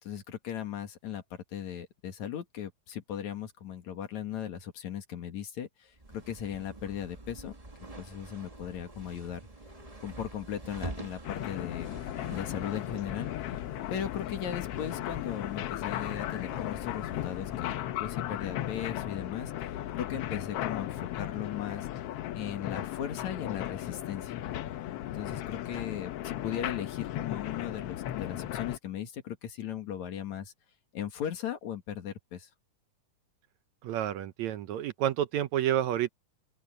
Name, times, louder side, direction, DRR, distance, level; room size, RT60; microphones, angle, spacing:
voice 1, 0.0-7.6 8.0-9.4 10.0-12.0 12.3-13.6 13.9-21.9 22.3-24.3 25.1-30.5 30.9-32.5, left 9 dB, 65° left, 3.0 m, -38 dB
sound 1, 5.9-17.7, right 2 dB, 20° right, 1.0 m, -47 dB
sound 2, 11.2-28.8, left 13 dB, 85° left, 1.3 m, -36 dB
voice 2, 33.8-36.1, right 11 dB, 70° right, 1.9 m, -29 dB
omnidirectional pair, 3.7 m